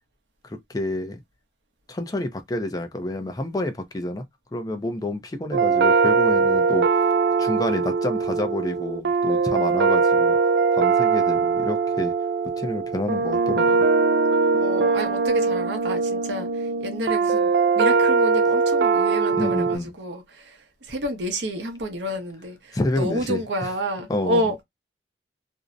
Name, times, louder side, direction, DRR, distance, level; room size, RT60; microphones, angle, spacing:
voice 1, 0.4-1.2 1.9-4.2 4.5-6.9 7.4-10.4 10.7-12.1 12.6-13.8 19.3-19.9 22.7-23.7 24.1-24.4, left 1 dB, 20° left, 0.4 m, -28 dB
sound 1, 5.5-19.8, right 4 dB, 65° right, 0.3 m, -21 dB
voice 2, 14.6-24.6, equal, 80° right, 0.7 m, -30 dB
2.6 x 2.0 x 2.4 m
head